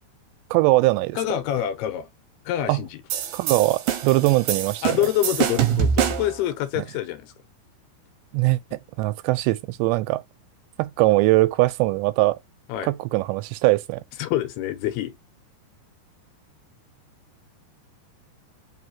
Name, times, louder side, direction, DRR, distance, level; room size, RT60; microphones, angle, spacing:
voice 1, 0.5-1.2 2.7-2.8 3.3-5.0 6.8-6.9 8.3-10.2 10.8-12.4 12.9-14.0, right 20 dB, 90° right, 2.8 m, -21 dB
voice 2, 1.2-2.1 2.5-3.0 4.8-7.3 12.7-12.9 14.2-15.1, left 12 dB, 75° left, 2.7 m, -26 dB
sound 1, 3.1-6.4, right 9 dB, 70° right, 2.5 m, -25 dB
6.1 x 5.6 x 2.8 m
omnidirectional pair, 4.9 m